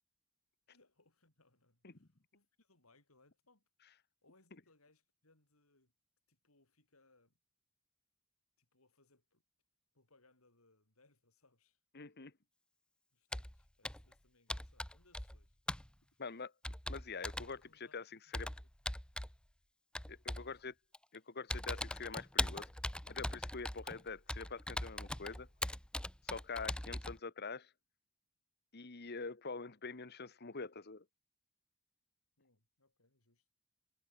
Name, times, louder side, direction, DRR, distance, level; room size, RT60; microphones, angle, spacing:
voice 1, 0.7-3.6 4.2-5.9 6.3-7.4 8.6-9.4 9.9-11.8 13.1-15.6 17.6-18.0 20.3-20.6 32.4-33.6, left 2 dB, 80° left, 5.9 m, -71 dB
voice 2, 11.9-12.3 16.2-16.5 16.9-18.1 18.3-18.5 20.1-20.7 21.1-22.7 23.1-25.5 26.2-27.7 28.7-31.0, left 4 dB, 50° left, 1.4 m, -45 dB
Computer keyboard, 13.3-13.6 13.9-14.1 14.5-15.4 15.7-15.9 16.6-17.5 18.3-19.4 20.0-20.5 20.9-21.2 21.5-27.2, left 1 dB, 5° left, 0.6 m, -40 dB
head